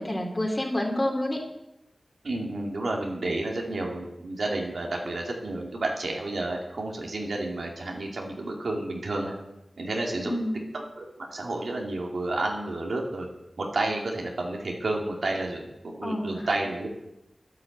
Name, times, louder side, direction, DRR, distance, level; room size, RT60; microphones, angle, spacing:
voice 1, 0.0-1.4 10.2-10.6 16.0-16.5, left 1 dB, 30° left, 1 dB, 3.4 m, -28 dB
voice 2, 2.2-9.3 9.8-10.4 10.7-13.3 13.6-16.9, right 2 dB, 80° right, 0 dB, 2.6 m, -31 dB
10.0 x 9.7 x 8.1 m, 0.92 s
wide cardioid pair, 55°, 0 cm